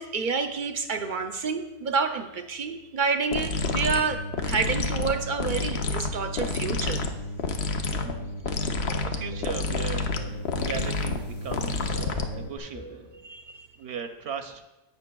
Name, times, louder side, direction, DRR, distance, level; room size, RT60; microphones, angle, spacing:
voice 1, 0.0-7.0 13.2-13.7, right 5 dB, 60° right, 0.6 m, -29 dB
sound 1, 3.3-12.6, left 3 dB, 70° left, 0.9 m, -29 dB
sound 2, 8.0-13.2, left 1 dB, 40° left, 1.4 m, -46 dB
voice 2, 8.2-13.1 13.8-14.7, right 7 dB, 80° right, 0.9 m, -38 dB
17.0 x 5.9 x 2.2 m
omnidirectional pair, 1.1 m